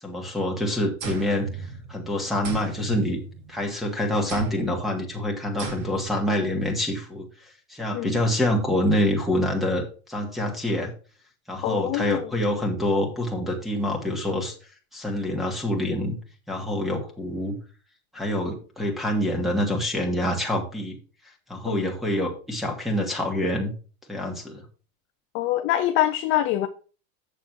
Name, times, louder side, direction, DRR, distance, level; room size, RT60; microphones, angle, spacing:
voice 1, 0.0-3.2 3.5-10.9 11.5-14.5 14.9-16.2 16.5-17.6 18.1-21.0 21.5-23.7 24.1-24.6, left 1 dB, ahead, 1.8 m, -26 dB
sound 1, 1.0-2.1 2.4-3.7 4.3-4.8 5.6-6.2, right 5 dB, 60° right, 2.9 m, -35 dB
voice 2, 11.6-12.3 21.7-21.9 25.3-26.7, left 13 dB, 30° left, 0.4 m, -25 dB
7.5 x 6.4 x 4.5 m
supercardioid pair, 150°, 43 cm